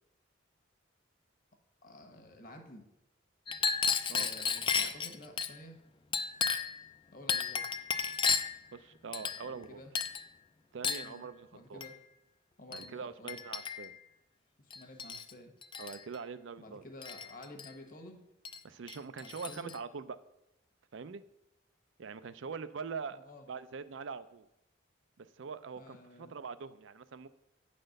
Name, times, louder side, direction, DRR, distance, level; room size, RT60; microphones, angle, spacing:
voice 1, 1.8-2.9 4.1-5.8 6.7-6.8 7.1-7.6 9.4-9.9 11.0-11.9 12.6-13.4 14.6-15.5 16.6-18.2 19.2-19.7 23.1-23.4 25.8-26.3, left 1 dB, 45° left, 4 dB, 1.2 m, -51 dB
Chink clink, 3.5-5.5 6.1-6.8 7.3-8.6 9.1-9.7 10.0-10.3 10.8-11.1 11.8-12.0 12.7-12.9 13.3-14.0 14.7-15.3 15.6-16.0 17.0-17.7 18.5-18.6 18.9-19.8, left 6 dB, 25° left, 0.4 m, -33 dB
voice 2, 4.1-4.5 4.8-4.9 8.7-9.8 10.7-11.8 12.7-13.9 15.8-16.9 18.6-20.2 20.9-21.2 22.0-23.2 23.5-24.5 25.2-27.3, right 5 dB, 70° right, 14 dB, 0.5 m, -43 dB
8.7 x 4.2 x 6.5 m, 0.83 s
head